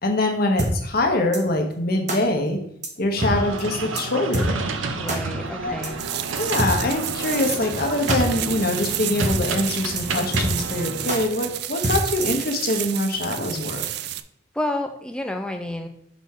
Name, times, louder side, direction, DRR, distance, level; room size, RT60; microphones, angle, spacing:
voice 1, 0.0-2.6 3.0-4.6 5.6-5.8 6.4-13.9, left 2 dB, 50° left, 3 dB, 0.9 m, -24 dB
sound 1, 0.6-0.7 1.3-1.4 2.1-2.2 2.8-2.9 3.2-3.3 3.6-3.7 4.0-4.1 4.3-4.5 5.1-5.2 5.8-5.9 6.6-6.7 7.3-7.4 7.7-7.8 8.1-8.2 8.5-8.6 8.8-8.9 9.2-9.3 9.6-9.7 10.0-10.1 10.3-10.8 11.1-11.2 11.8-12.4, right 1 dB, 35° right, 0.9 m, -25 dB
sound 2, 3.2-11.2, right 3 dB, 75° right, 0.7 m, -31 dB
voice 2, 5.0-6.0 14.5-15.9, left 1 dB, 5° left, 5 dB, 0.5 m, -29 dB
sound 3, 6.0-14.2, right 13 dB, 55° right, 0.3 m, -31 dB
6.0 x 3.7 x 4.2 m, 0.72 s
head